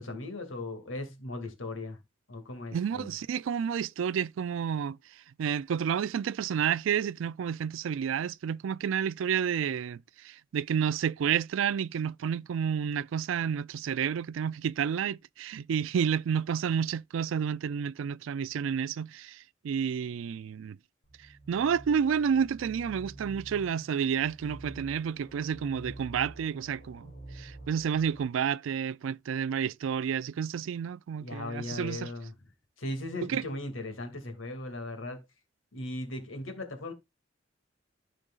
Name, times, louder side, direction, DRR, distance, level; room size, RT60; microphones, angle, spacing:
voice 1, 0.0-2.0 2.3-3.2 31.2-32.3 32.8-35.2 35.7-36.9, left 2 dB, 85° left, 2.3 m, -38 dB
voice 2, 2.7-5.0 5.4-20.8 21.5-32.1 33.3-33.4, right 7 dB, 80° right, 0.3 m, -30 dB
sound 1, 21.0-28.3, right 2 dB, 50° left, 3.0 m, -47 dB
14.5 x 5.1 x 2.4 m
head